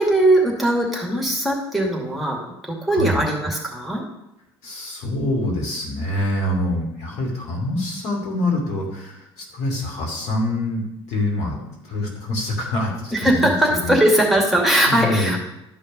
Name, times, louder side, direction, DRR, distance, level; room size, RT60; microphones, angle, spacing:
voice 1, 0.0-4.0 13.1-15.4, right 1 dB, ahead, -1 dB, 2.3 m, -20 dB
voice 2, 2.9-3.2 4.6-13.5 13.8-13.9 14.9-15.4, left 1 dB, 55° left, -1 dB, 2.6 m, -25 dB
12.0 x 5.4 x 5.3 m, 0.87 s
figure-of-eight pair, 60°, 14 cm